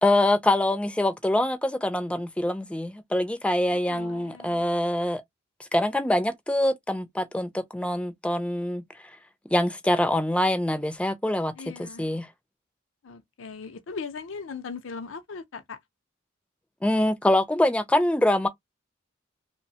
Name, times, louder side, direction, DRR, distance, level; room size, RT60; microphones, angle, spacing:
voice 1, 0.0-5.2 5.6-8.8 9.5-11.5 11.8-12.3 16.8-18.5, left 1 dB, 5° left, 0.4 m, -24 dB
voice 2, 3.7-4.6 11.6-12.1 13.0-15.8, left 5 dB, 80° left, 0.5 m, -39 dB
3.0 x 2.1 x 2.7 m
head